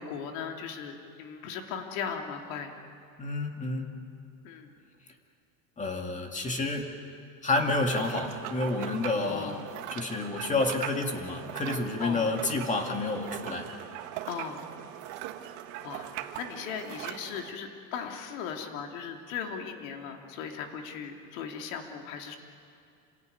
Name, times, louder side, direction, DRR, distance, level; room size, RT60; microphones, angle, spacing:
voice 1, 0.0-2.7 4.4-4.7 9.2-9.6 12.0-12.3 14.3-14.6 15.8-22.4, left 6 dB, 70° left, 3 dB, 2.9 m, -38 dB
voice 2, 3.2-3.9 5.8-6.9 7.4-9.6 9.9-13.7, left 2 dB, 15° left, 3 dB, 2.2 m, -29 dB
sound 1, 7.6-17.5, right 12 dB, 65° right, 1.5 m, -40 dB
27.5 x 17.0 x 9.2 m, 2.4 s
supercardioid pair, 150°, 42 cm